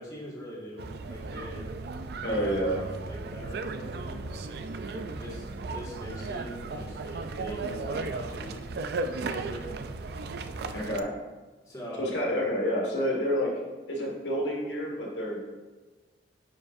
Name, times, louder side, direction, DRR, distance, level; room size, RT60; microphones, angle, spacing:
voice 1, 0.0-1.7 2.3-4.6 4.9-8.6 9.2-9.7 11.6-12.1, equal, 20° left, -6 dB, 1.8 m, -42 dB
sound 1, 0.8-11.0, right 3 dB, 60° right, 0.4 m, -36 dB
voice 2, 2.2-2.8 10.7-11.1 12.0-13.5 13.9-15.4, equal, 80° left, -2 dB, 1.8 m, -28 dB
9.6 x 4.9 x 2.6 m, 1.3 s
head